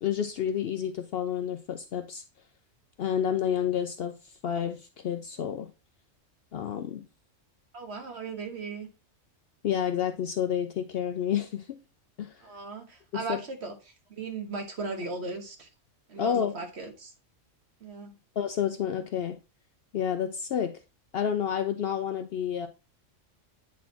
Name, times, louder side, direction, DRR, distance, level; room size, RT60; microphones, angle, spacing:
voice 1, 0.0-2.2 3.0-5.7 6.5-7.0 9.6-11.8 12.2-12.4 13.3-13.4 16.2-16.5 18.4-19.4 19.9-20.8 21.1-22.7, left 8 dB, 60° left, 0.7 m, -29 dB
voice 2, 7.7-8.9 12.4-15.7 16.1-17.1 17.8-18.1, right 4 dB, 55° right, 1.4 m, -37 dB
8.5 x 4.1 x 2.8 m
omnidirectional pair, 1.3 m